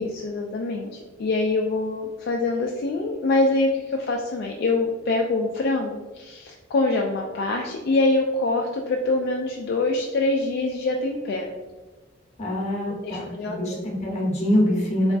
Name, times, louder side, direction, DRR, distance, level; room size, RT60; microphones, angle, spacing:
voice 1, 0.0-11.5 13.0-13.8, left 2 dB, 55° left, 0 dB, 0.3 m, -25 dB
voice 2, 12.4-15.1, equal, 35° left, -3 dB, 1.0 m, -24 dB
3.4 x 3.0 x 2.5 m, 1.2 s
head